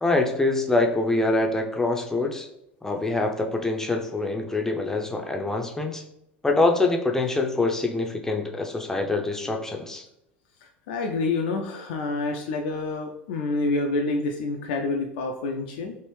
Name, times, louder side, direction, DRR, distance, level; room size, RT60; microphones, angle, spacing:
voice 1, 0.0-2.5 2.8-6.0 6.4-10.0, left 2 dB, 10° left, 2 dB, 0.5 m, -25 dB
voice 2, 10.9-16.0, left 3 dB, 60° left, 2 dB, 0.3 m, -27 dB
3.3 x 2.5 x 3.1 m, 0.81 s
figure-of-eight pair, 75°, 6 cm